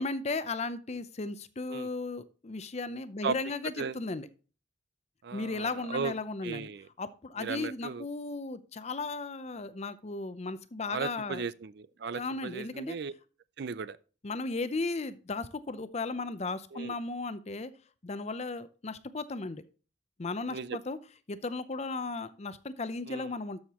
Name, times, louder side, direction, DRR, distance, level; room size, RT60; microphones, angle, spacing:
voice 1, 0.0-4.3 5.3-6.7 7.0-11.4 12.1-13.0 14.2-17.7 18.0-19.6 20.2-21.0 21.3-23.6, left 3 dB, 35° left, 0.6 m, -35 dB
voice 2, 5.2-6.1 6.4-6.9 7.4-8.1 10.9-13.1 13.6-14.0 16.7-16.9 20.5-20.8 23.1-23.3, right 5 dB, 60° right, 0.5 m, -36 dB
12.5 x 6.5 x 3.0 m
head